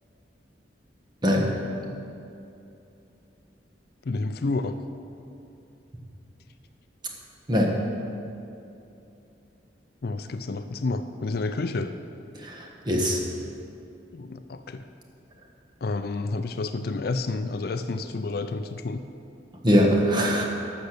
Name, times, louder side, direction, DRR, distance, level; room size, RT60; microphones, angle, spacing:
voice 1, 1.2-1.5 7.5-7.8 12.4-13.2 19.6-20.4, equal, 25° right, -1 dB, 1.3 m, -22 dB
voice 2, 4.0-4.8 10.0-11.9 14.1-14.8 15.8-19.0, left 3 dB, 55° left, 9 dB, 0.4 m, -30 dB
12.0 x 6.6 x 6.7 m, 2.7 s
head